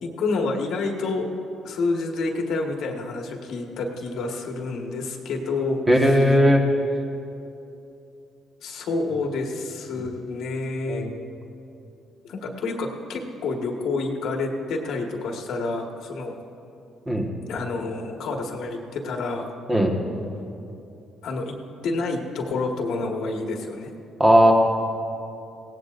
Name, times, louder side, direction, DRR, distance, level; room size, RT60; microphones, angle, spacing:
voice 1, 0.0-1.3 1.6-6.4 8.6-11.1 12.3-16.3 17.5-19.5 21.2-21.5 21.8-23.9, left 3 dB, 70° left, 1 dB, 1.5 m, -28 dB
voice 2, 5.9-6.6 10.9-11.1 17.1-17.3 19.7-19.9 24.2-24.5, equal, 15° right, 0 dB, 1.4 m, -17 dB
22.0 x 17.5 x 2.6 m, 2.8 s
cardioid pair, 140°, 0 cm